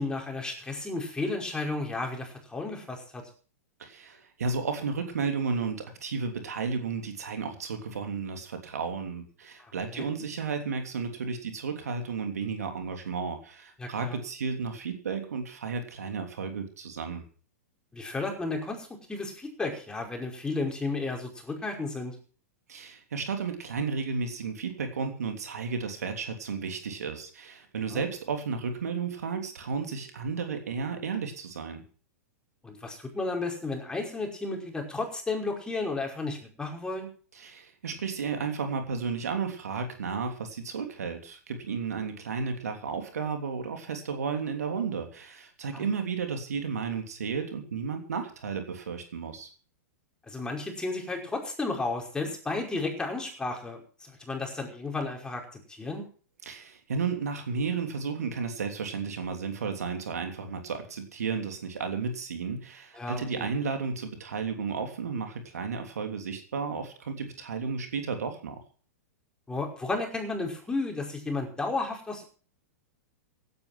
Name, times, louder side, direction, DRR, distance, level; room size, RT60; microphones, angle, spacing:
voice 1, 0.0-3.2 9.9-10.1 13.8-14.2 17.9-22.2 27.9-28.0 32.6-37.1 45.7-45.9 50.3-55.4 55.7-56.1 62.9-63.5 69.5-72.2, left 3 dB, 10° left, 1 dB, 5.2 m, -33 dB
voice 2, 3.8-17.2 22.7-31.8 37.3-49.5 56.4-68.6, right 5 dB, 75° right, 5 dB, 3.1 m, -33 dB
17.0 x 9.7 x 5.9 m, 0.41 s
hypercardioid pair, 110°, 9 cm